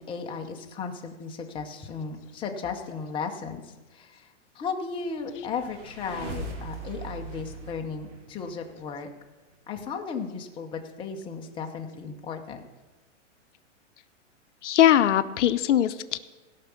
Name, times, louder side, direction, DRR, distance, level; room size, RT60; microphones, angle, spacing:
voice 1, 0.0-9.1 9.7-12.6, left 5 dB, 15° left, 3 dB, 0.8 m, -35 dB
sound 1, 5.2-8.8, right 2 dB, 65° right, 3.9 m, -39 dB
voice 2, 14.6-16.2, left 11 dB, 70° left, 12 dB, 0.7 m, -21 dB
16.5 x 5.9 x 6.9 m, 1.2 s
hypercardioid pair, 150°, 37 cm